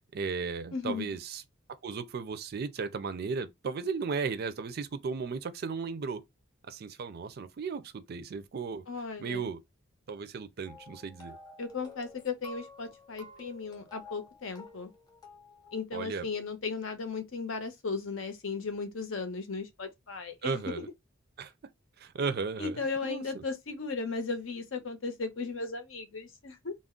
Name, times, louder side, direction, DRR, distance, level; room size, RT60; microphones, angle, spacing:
voice 1, 0.0-1.4 1.8-6.2 6.7-8.8 9.2-9.6 10.1-11.4 15.9-16.3 20.4-20.9 21.4-21.5 22.0-23.4, right 5 dB, 50° right, 0.4 m, -35 dB
voice 2, 0.7-1.1 8.9-9.5 11.6-14.9 15.7-20.8 22.2-26.7, left 4 dB, 70° left, 0.7 m, -36 dB
sound 1, 10.7-15.8, left 3 dB, 20° left, 0.6 m, -51 dB
2.4 x 2.0 x 3.6 m
head